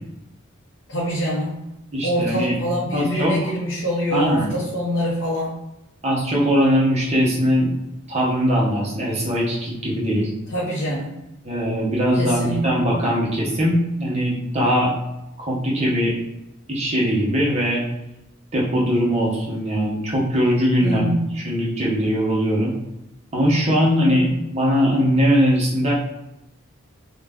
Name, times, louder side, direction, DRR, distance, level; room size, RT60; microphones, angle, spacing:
voice 1, 0.9-1.6 2.0-5.6 10.5-11.1 12.2-12.8 20.8-21.3 24.0-24.2, equal, 60° left, -6 dB, 0.6 m, -25 dB
voice 2, 1.9-2.5 2.9-3.5 4.1-4.5 6.0-7.7 8.1-10.3 11.4-14.9 15.4-16.1 16.7-17.8 18.5-21.1 21.3-22.7 23.3-25.9, equal, 30° right, -4 dB, 0.7 m, -20 dB
2.4 x 2.1 x 3.4 m, 0.92 s
head